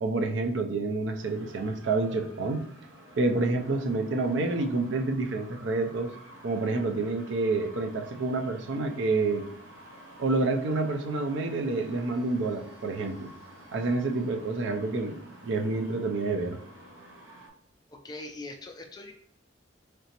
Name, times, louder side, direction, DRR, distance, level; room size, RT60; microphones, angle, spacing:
voice 1, 0.0-2.6 3.2-6.1 6.4-9.4 10.2-13.3 13.7-15.2 15.4-16.6, right 3 dB, 70° right, 6 dB, 0.4 m, -28 dB
sound 1, 1.2-17.5, right 1 dB, 85° right, 0.8 m, -51 dB
voice 2, 17.9-19.1, left 2 dB, 20° left, 4 dB, 0.3 m, -41 dB
3.9 x 3.3 x 2.9 m, 0.70 s
head